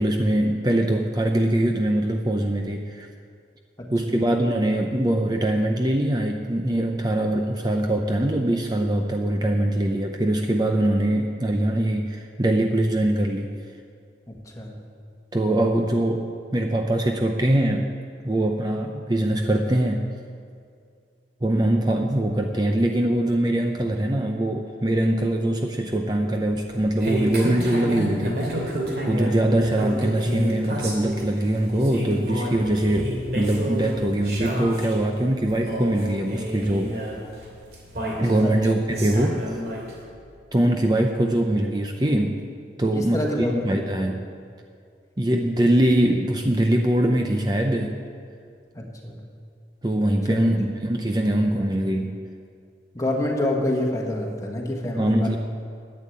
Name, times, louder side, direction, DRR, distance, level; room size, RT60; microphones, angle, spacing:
voice 1, 0.0-3.1 3.9-13.5 15.3-17.9 18.2-20.1 21.4-28.8 29.0-37.0 38.2-39.4 40.5-42.4 42.8-44.2 45.2-48.0 49.8-52.1 55.0-55.4, right 1 dB, 25° right, 3 dB, 0.6 m, -22 dB
voice 2, 3.8-4.3 14.3-14.8 38.4-38.5 42.9-44.1 48.7-49.2 50.2-50.4 50.8-50.9 51.2-51.7 52.9-55.4, left 1 dB, 20° left, -1 dB, 1.5 m, -28 dB
sound 1, 26.5-40.0, equal, 60° right, 2.7 m, -30 dB
11.0 x 8.6 x 8.5 m, 2.3 s
head